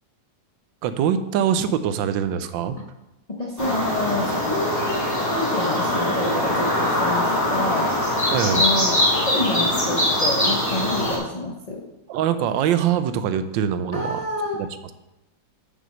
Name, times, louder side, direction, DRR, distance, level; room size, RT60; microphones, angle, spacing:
voice 1, 0.8-2.8 8.3-8.6 12.1-14.2 14.6-14.7, right 9 dB, 85° right, 11 dB, 1.3 m, -23 dB
voice 2, 3.4-5.0 5.3-8.0 8.5-11.9 13.9-14.6, left 2 dB, 35° left, 0 dB, 0.6 m, -28 dB
sound 1, 3.6-11.2, left 1 dB, 10° left, 2.2 m, -22 dB
6.2 x 5.9 x 6.4 m, 0.97 s
omnidirectional pair, 2.0 m